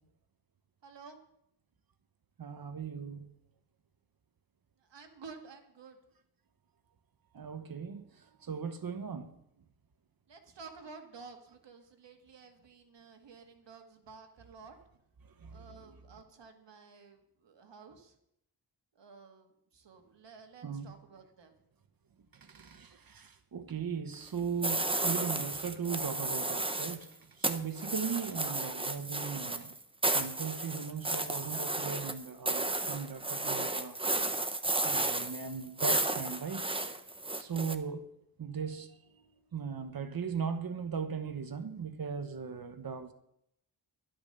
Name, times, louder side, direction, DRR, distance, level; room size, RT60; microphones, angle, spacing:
voice 1, 0.8-1.2 4.9-6.0 10.3-14.8 15.5-18.1 19.0-21.5, right 5 dB, 80° right, 2.1 m, -52 dB
voice 2, 2.4-3.3 7.3-8.0 8.4-9.4 15.4-15.6 20.6-20.9 22.4-27.1 27.5-29.7 30.1-34.0 34.8-36.7 37.4-38.1 38.4-39.0 39.5-43.1, right 6 dB, 55° right, 1.2 m, -38 dB
sound 1, 24.6-27.0 27.4-37.8, right 2 dB, 15° right, 0.9 m, -33 dB
12.0 x 11.5 x 6.8 m
wide cardioid pair, 140°, 42 cm